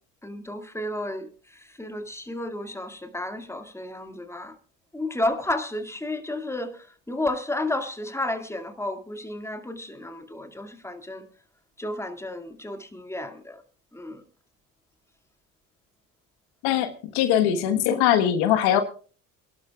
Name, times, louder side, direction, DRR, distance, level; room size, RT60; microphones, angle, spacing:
voice 1, 0.2-4.6 4.9-11.2 11.8-13.6 13.9-14.2, left 1 dB, 5° left, 2.2 m, -32 dB
voice 2, 16.6-18.8, left 10 dB, 70° left, 1.4 m, -21 dB
28.0 x 12.0 x 2.4 m
hypercardioid pair, 60°, 41 cm